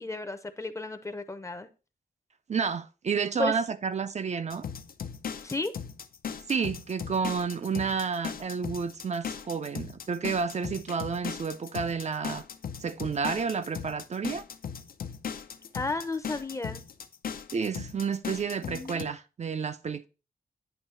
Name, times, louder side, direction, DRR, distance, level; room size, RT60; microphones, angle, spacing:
voice 1, 0.0-1.7 3.4-3.5 5.4-5.7 15.7-16.8 18.6-19.2, left 3 dB, 20° left, 0.6 m, -33 dB
voice 2, 2.5-4.6 6.5-12.4 12.8-14.4 17.5-20.1, right 5 dB, 45° right, 0.4 m, -30 dB
sound 1, 4.5-19.0, left 7 dB, 70° left, 0.6 m, -38 dB
9.1 x 3.2 x 5.5 m
wide cardioid pair, 150°, 15 cm